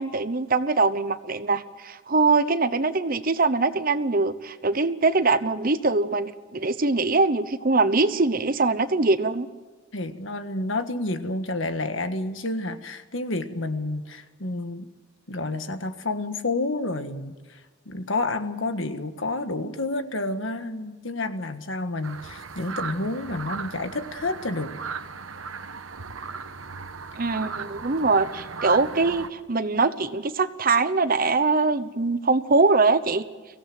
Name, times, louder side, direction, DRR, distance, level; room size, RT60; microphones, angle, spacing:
voice 1, 0.0-9.5 27.2-33.3, right 3 dB, 45° right, 12 dB, 0.9 m, -22 dB
voice 2, 9.9-14.9 15.3-17.6 17.8-24.7, left 2 dB, 70° left, 8 dB, 1.6 m, -29 dB
sound 1, 22.0-29.3, right 5 dB, 80° right, 1.3 m, -37 dB
24.0 x 16.5 x 7.8 m, 1.4 s
head